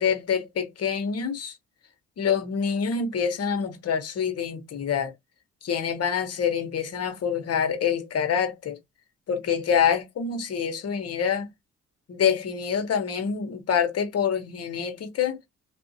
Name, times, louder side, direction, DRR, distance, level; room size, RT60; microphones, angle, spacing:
voice 1, 0.0-1.6 2.2-5.1 5.6-8.8 9.3-11.5 12.1-15.4, left 7 dB, 55° left, 1.1 m, -26 dB
3.5 x 2.7 x 2.7 m
cardioid pair, 90°, 30 cm